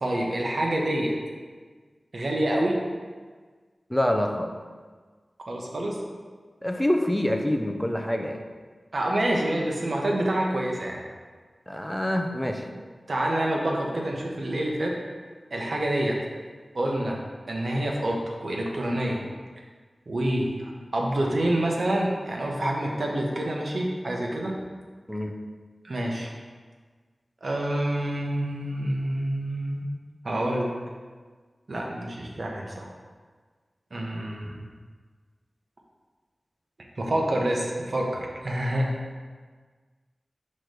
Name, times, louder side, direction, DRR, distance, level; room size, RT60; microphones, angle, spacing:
voice 1, 0.0-1.2 2.1-2.8 5.5-6.0 8.9-11.0 13.1-14.9 15.5-16.2 16.7-17.2 17.5-19.2 20.1-24.6 25.8-26.3 27.4-29.9 30.2-30.8 31.7-32.9 33.9-34.7 37.0-38.9, right 1 dB, 65° right, -1 dB, 1.0 m, -27 dB
voice 2, 3.9-4.5 6.6-8.4 11.7-12.6 25.1-25.3, left 1 dB, 5° left, 3 dB, 0.6 m, -26 dB
6.0 x 3.2 x 5.2 m, 1.5 s
wide cardioid pair, 75°, 0 cm